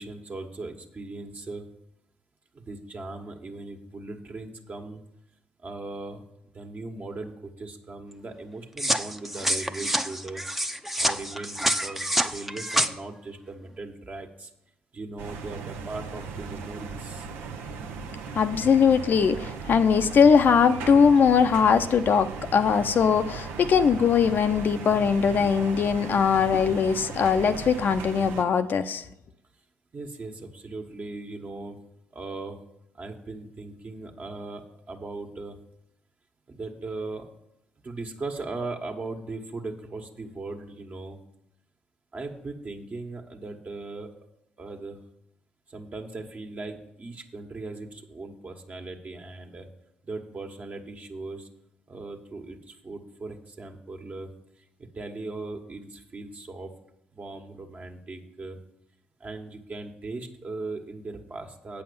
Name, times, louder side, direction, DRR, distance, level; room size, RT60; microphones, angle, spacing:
voice 1, 0.0-1.7 2.5-5.0 5.6-6.2 6.5-10.4 11.0-14.5 14.9-17.3 29.9-31.8 32.1-32.6 32.9-35.6 36.5-37.3 37.8-41.2 42.1-44.1 44.6-45.0 45.7-49.7 50.0-51.5 51.9-54.3 54.9-56.7 57.1-58.6 59.2-61.8, right 3 dB, 40° right, 3 dB, 1.5 m, -38 dB
sound 1, 8.8-12.9, right 1 dB, 5° right, 0.7 m, -27 dB
sound 2, 15.2-28.4, right 5 dB, 75° right, 0.8 m, -37 dB
voice 2, 18.3-29.0, left 6 dB, 55° left, 9 dB, 0.6 m, -21 dB
8.5 x 5.6 x 7.0 m, 0.82 s
hypercardioid pair, 45°, 4 cm